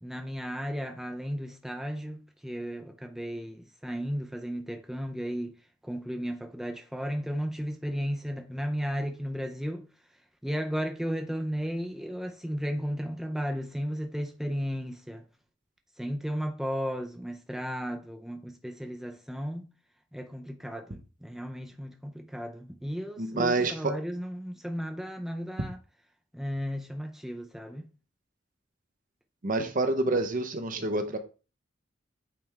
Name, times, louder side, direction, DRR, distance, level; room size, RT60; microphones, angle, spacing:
voice 1, 0.0-5.6 5.8-9.9 10.4-15.2 16.0-19.6 20.1-25.8 26.3-27.9, equal, ahead, 0.5 m, -34 dB
voice 2, 23.2-24.0 29.4-31.2, right 2 dB, 45° right, 0.9 m, -27 dB
8.7 x 3.4 x 3.5 m
head